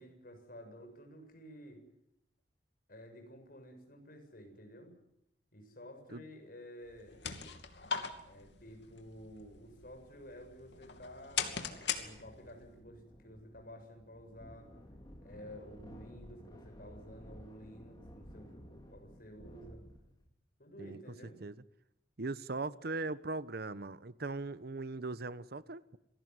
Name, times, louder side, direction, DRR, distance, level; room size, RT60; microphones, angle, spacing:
voice 1, 0.0-1.8 2.9-4.9 5.5-7.3 8.2-14.7 15.2-19.8 20.6-21.4, equal, 55° left, 4 dB, 7.4 m, -52 dB
sound 1, 6.9-12.6, left 7 dB, 90° left, 2.7 m, -41 dB
sound 2, 11.9-20.3, equal, 25° left, 4.3 m, -54 dB
voice 2, 22.2-25.8, right 3 dB, 60° right, 16 dB, 1.0 m, -39 dB
27.5 x 19.0 x 9.5 m, 0.82 s
head